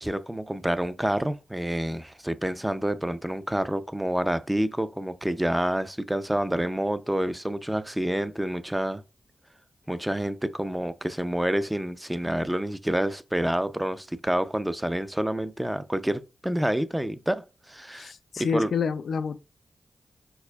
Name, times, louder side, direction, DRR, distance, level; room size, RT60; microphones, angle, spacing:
voice 1, 0.0-9.0 9.9-18.1 18.5-18.7, right 1 dB, 10° right, 0.4 m, -28 dB
voice 2, 17.9-19.4, left 6 dB, 80° left, 0.3 m, -28 dB
4.6 x 4.2 x 2.3 m
cardioid pair, 50°, 0 cm